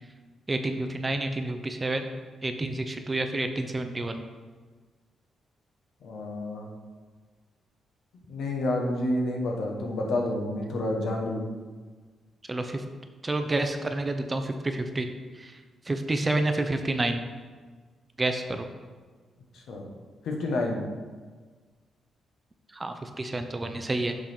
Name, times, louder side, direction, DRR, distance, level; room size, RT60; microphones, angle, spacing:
voice 1, 0.5-2.1 2.4-4.2 12.5-12.8 13.2-15.1 15.3-15.6 15.9-17.2 18.2-18.7 22.7-24.1, right 2 dB, 25° right, 6 dB, 0.6 m, -29 dB
voice 2, 6.0-6.7 8.3-11.4 19.7-19.9 20.2-20.8, left 1 dB, 75° left, 0 dB, 1.3 m, -29 dB
7.1 x 3.5 x 5.8 m, 1.5 s
cardioid pair, 80°, 0 cm